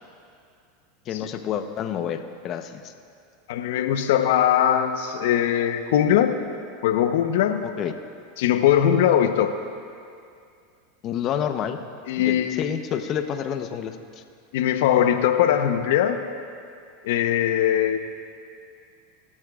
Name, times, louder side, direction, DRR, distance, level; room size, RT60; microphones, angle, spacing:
voice 1, 1.1-2.9 7.6-7.9 11.0-11.8 12.2-14.0, left 9 dB, 45° left, 8 dB, 0.9 m, -29 dB
voice 2, 3.5-6.3 6.8-7.7 8.4-9.5 12.1-12.7 14.5-16.2 17.0-18.0, left 10 dB, 70° left, 8 dB, 0.9 m, -21 dB
22.5 x 13.5 x 2.5 m, 2.4 s
hypercardioid pair, 100°, 0 cm